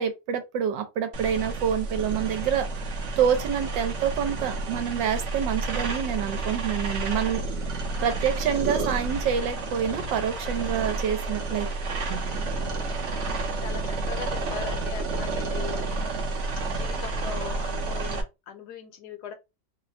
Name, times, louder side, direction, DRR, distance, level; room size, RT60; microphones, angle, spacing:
voice 1, 0.0-7.4 7.7-11.7 12.1-12.2, right 8 dB, 85° right, 1.4 m, -27 dB
sound 1, 1.1-18.2, right 3 dB, 55° right, 0.9 m, -30 dB
voice 2, 11.6-16.1 16.7-19.3, left 7 dB, 70° left, 1.1 m, -41 dB
3.2 x 2.1 x 4.0 m
omnidirectional pair, 2.0 m